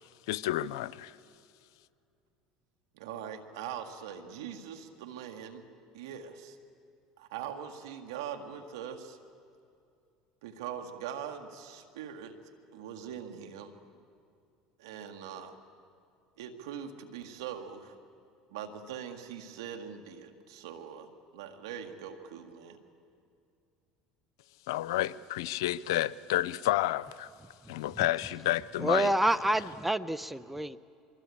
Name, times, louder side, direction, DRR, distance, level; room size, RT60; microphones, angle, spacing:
voice 1, 0.3-1.1 24.7-27.3 27.7-29.1, left 15 dB, 85° left, 0.6 m, -30 dB
voice 2, 2.9-5.6 5.9-6.6 7.2-9.2 10.4-12.3 12.7-13.7 14.8-15.5 16.4-18.0 18.5-22.8, right 8 dB, 85° right, 2.1 m, -42 dB
voice 3, 28.8-30.8, right 1 dB, 5° right, 0.8 m, -28 dB
25.0 x 23.5 x 8.6 m
supercardioid pair, 90°, 2 cm